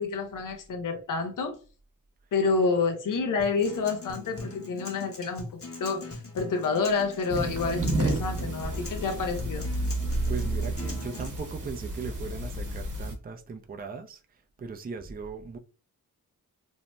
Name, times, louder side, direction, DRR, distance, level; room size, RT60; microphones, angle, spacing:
voice 1, 0.0-1.6 2.3-5.5 5.8-9.7, left 4 dB, 65° left, 0.6 m, -28 dB
Acoustic guitar, 3.4-11.4, left 3 dB, 40° left, 1.0 m, -41 dB
sound 1, 7.3-13.1, right 1 dB, 60° right, 0.9 m, -31 dB
voice 2, 10.0-15.6, right 4 dB, 25° right, 0.4 m, -39 dB
2.6 x 2.0 x 3.2 m
cardioid pair, 55°, 35 cm